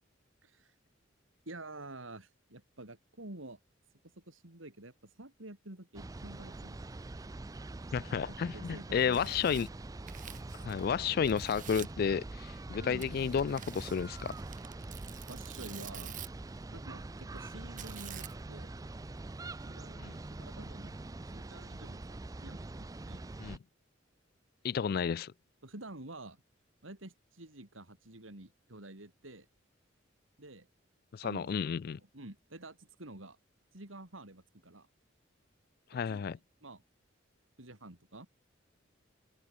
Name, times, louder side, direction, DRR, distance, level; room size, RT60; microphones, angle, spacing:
voice 1, 0.4-0.8 1.5-3.6 4.2-6.9 8.3-9.2 12.8-13.0 15.3-16.2 16.7-18.8 19.6-23.4 24.9-25.0 25.6-26.4 26.8-29.5 30.4-30.7 31.2-33.4 33.7-34.9 36.1-36.8 37.6-38.3, right 2 dB, 90° right, 4.0 m, -49 dB
sound 1, 5.9-23.6, right 2 dB, 20° right, 0.4 m, -44 dB
voice 2, 7.9-9.7 10.6-14.3 20.0-20.2 23.4-23.6 24.6-25.3 31.1-32.0 35.9-36.4, left 6 dB, 50° left, 0.3 m, -32 dB
Tearing, 8.9-11.0 11.2-12.0 13.0-16.5 17.8-18.6, right 10 dB, 40° right, 0.8 m, -49 dB
open air
head